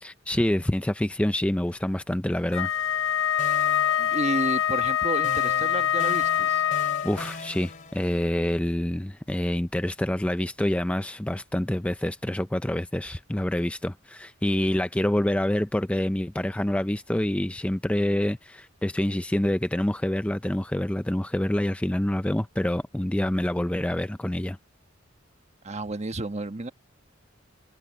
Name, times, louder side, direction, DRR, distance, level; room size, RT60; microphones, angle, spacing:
voice 1, 0.0-2.7 7.0-24.6, left 1 dB, 5° left, 0.4 m, -27 dB
Wind instrument woodwind instrument, 2.5-7.2, left 10 dB, 85° left, 0.7 m, -24 dB
sound 1, 2.8-3.1 3.4-4.8 5.2-8.4, left 3 dB, 45° left, 2.8 m, -41 dB
voice 2, 4.0-6.6 25.6-26.7, right 2 dB, 35° right, 1.3 m, -31 dB
head